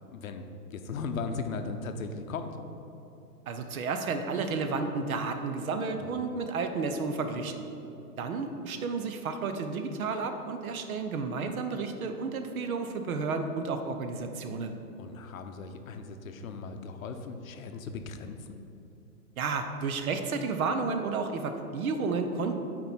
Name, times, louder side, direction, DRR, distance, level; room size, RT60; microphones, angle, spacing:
voice 1, 0.1-2.5 6.0-6.3 15.0-18.6, left 4 dB, 55° left, 7 dB, 0.7 m, -37 dB
voice 2, 3.5-7.6 8.2-14.8 19.4-22.6, right 4 dB, 60° right, 7 dB, 0.9 m, -32 dB
9.3 x 4.4 x 4.4 m, 2.9 s
hypercardioid pair, 140°, 48 cm